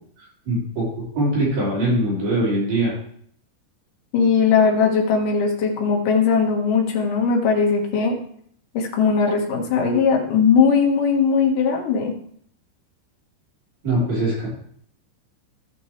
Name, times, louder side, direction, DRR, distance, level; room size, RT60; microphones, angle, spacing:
voice 1, 0.2-0.9 1.1-3.0 13.8-14.5, right 1 dB, 50° right, -7 dB, 6.0 m, -22 dB
voice 2, 4.1-8.2 8.7-12.1, left 5 dB, 60° left, -1 dB, 2.4 m, -19 dB
15.5 x 6.3 x 3.2 m, 0.64 s
omnidirectional pair, 5.5 m